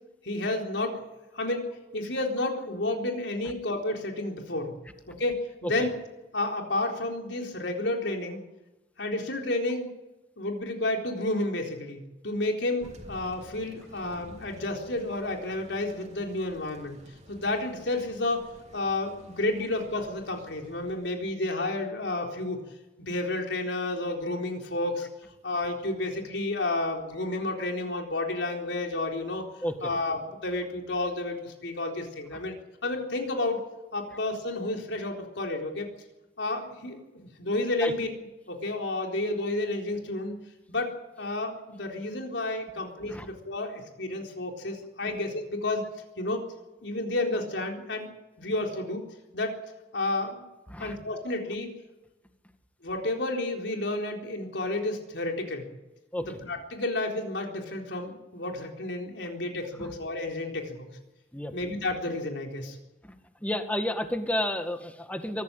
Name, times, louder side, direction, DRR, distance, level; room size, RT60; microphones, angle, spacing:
voice 1, 0.2-1.0 1.3-4.7 5.1-5.9 6.3-8.4 9.0-9.9 10.4-17.0 17.3-18.5 18.7-22.6 23.0-25.1 25.4-29.4 29.8-32.5 32.8-33.6 33.9-35.9 36.4-38.2 38.5-40.4 40.7-45.8 46.2-46.4 46.8-48.1 48.4-49.0 49.3-49.6 49.9-50.4 50.8-51.7 52.8-55.6 56.2-60.9 61.5-62.8, left 2 dB, 85° left, 2 dB, 4.0 m, -31 dB
Thunder, 12.8-21.3, equal, 40° right, 3.3 m, -52 dB
voice 2, 63.4-65.4, left 1 dB, 10° left, 7 dB, 1.9 m, -31 dB
24.0 x 14.5 x 9.0 m, 1.0 s
head